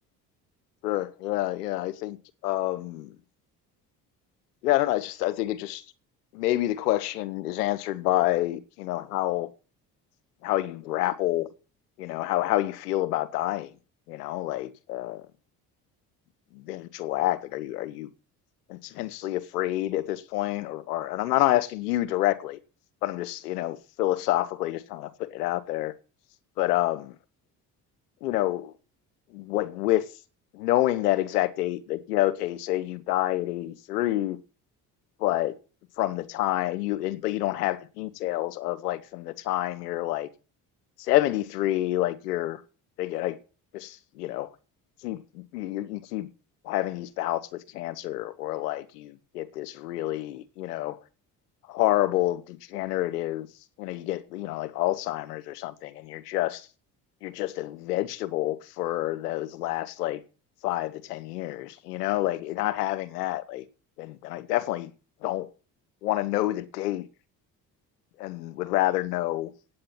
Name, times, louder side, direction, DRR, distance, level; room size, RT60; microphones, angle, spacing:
voice 1, 0.8-2.2 2.4-3.1 4.6-5.8 6.3-9.5 10.4-11.5 12.0-13.7 14.1-15.2 16.5-18.1 18.7-22.6 23.0-25.9 26.6-27.2 28.2-28.7 29.3-30.0 30.5-34.4 35.2-35.5 36.0-40.3 41.0-42.6 43.0-43.4 43.7-44.5 45.0-46.3 46.6-47.4 47.7-51.0 51.7-53.5 53.8-56.7 57.2-60.2 60.6-63.6 64.0-64.9 65.2-65.5 66.0-67.0 68.2-69.5, left 15 dB, 90° left, 1.1 m, -28 dB
8.7 x 8.7 x 9.0 m
hypercardioid pair, 60°, 46 cm